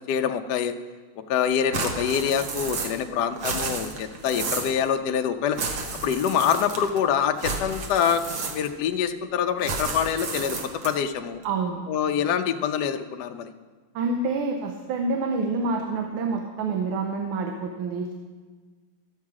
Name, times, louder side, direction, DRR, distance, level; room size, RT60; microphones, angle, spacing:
voice 1, 0.1-0.7 1.3-5.6 6.0-8.2 8.5-10.6 10.8-11.4 11.9-13.5, left 8 dB, 80° left, 7 dB, 0.9 m, -25 dB
sound 1, 1.7-3.1 3.3-4.8 5.5-7.0 7.4-8.9 9.6-11.1, right 4 dB, 55° right, 1.5 m, -32 dB
voice 2, 11.4-11.8 13.9-18.1, right 3 dB, 80° right, 3 dB, 1.6 m, -27 dB
13.0 x 7.4 x 4.7 m, 1.4 s
omnidirectional pair, 2.4 m